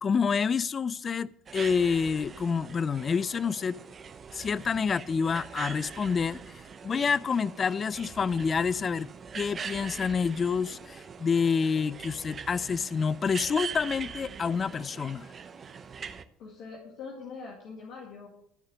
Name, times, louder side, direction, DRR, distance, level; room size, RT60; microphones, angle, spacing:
voice 1, 0.0-3.8 4.3-9.1 9.4-15.3, left 6 dB, 35° left, 0.4 m, -28 dB
sound 1, 1.5-16.2, right 6 dB, 35° right, 0.8 m, -42 dB
voice 2, 16.4-18.3, left 4 dB, 65° left, 2.1 m, -43 dB
13.5 x 4.9 x 7.5 m
hypercardioid pair, 75°, 0 cm